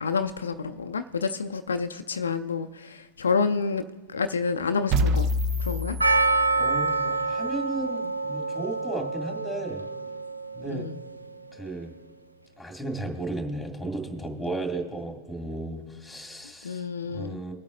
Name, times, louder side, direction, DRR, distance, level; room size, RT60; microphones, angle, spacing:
voice 1, 0.0-3.8 4.1-5.3 5.6-6.0 10.7-11.0 16.6-17.4, left 5 dB, 70° left, 9 dB, 0.4 m, -28 dB
sound 1, 4.9-7.0, left 1 dB, 35° right, 0.6 m, -26 dB
Percussion, 6.0-10.9, right 3 dB, 85° right, 0.4 m, -27 dB
voice 2, 6.6-9.8 10.5-10.9 11.5-11.9 12.6-17.5, right 2 dB, ahead, 2 dB, 2.3 m, -34 dB
24.0 x 8.5 x 2.6 m, 1.3 s
figure-of-eight pair, 90°, 0 cm